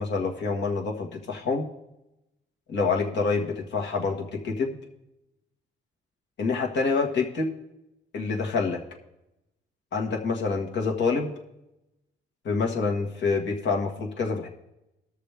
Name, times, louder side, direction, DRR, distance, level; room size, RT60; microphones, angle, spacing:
voice 1, 0.0-1.7 2.7-4.7 6.4-7.5 8.1-8.8 9.9-11.3 12.4-14.5, left 4 dB, 65° left, 1 dB, 1.8 m, -27 dB
18.5 x 6.6 x 3.5 m, 0.91 s
cardioid pair, 90°, 20 cm